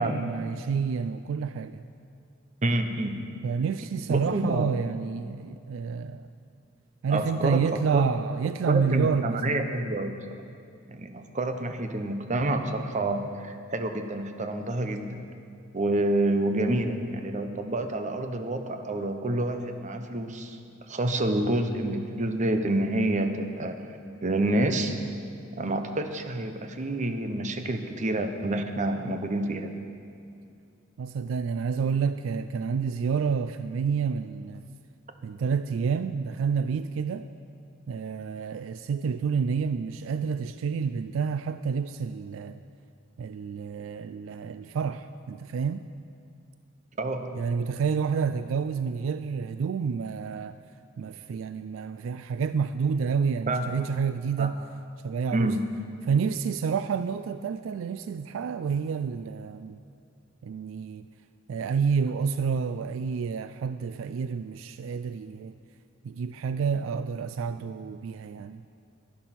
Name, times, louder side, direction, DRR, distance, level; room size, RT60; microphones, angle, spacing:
voice 1, 0.0-1.8 3.4-6.3 7.0-9.4 31.0-34.6 35.2-37.3 37.9-42.6 43.2-45.9 47.3-50.6 51.0-54.6 55.0-55.6 56.0-59.8 60.4-61.1 61.5-65.5 66.0-68.6, right 6 dB, 75° right, 11 dB, 0.3 m, -29 dB
voice 2, 2.6-3.3 4.0-4.7 7.1-7.6 7.9-8.0 8.7-10.2 10.9-15.2 15.7-20.6 20.9-23.8 24.2-25.0 25.5-29.8 47.0-47.4 53.5-53.7 54.4-54.5 55.3-55.6, right 1 dB, 40° right, 7 dB, 0.8 m, -28 dB
11.0 x 11.0 x 5.9 m, 2.4 s
head